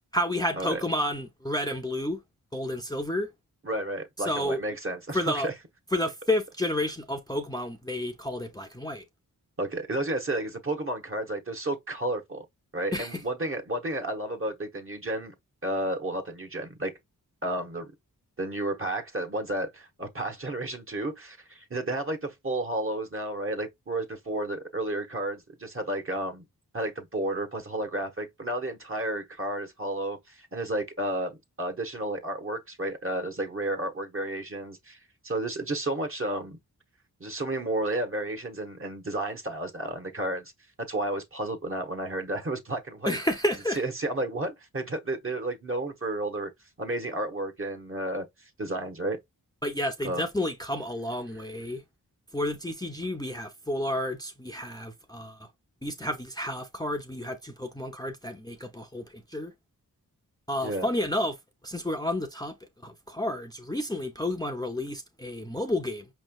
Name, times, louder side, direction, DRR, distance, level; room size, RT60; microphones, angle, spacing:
voice 1, 0.1-2.2 2.5-3.3 4.2-4.6 5.1-5.5 5.9-9.0 12.9-13.2 43.1-43.8 49.6-51.8 52.3-55.5 55.8-59.5 60.5-61.4 61.6-62.6 62.8-66.1, left 1 dB, 10° left, 0.7 m, -30 dB
voice 2, 3.6-5.5 9.6-12.4 12.7-15.3 15.6-16.9 17.4-17.9 18.4-26.4 26.7-36.6 37.2-40.5 40.9-43.2 43.7-46.5 46.8-49.2 50.0-50.2 60.6-60.9, right 1 dB, 35° right, 1.1 m, -32 dB
5.0 x 3.2 x 2.3 m
cardioid pair, 45°, 37 cm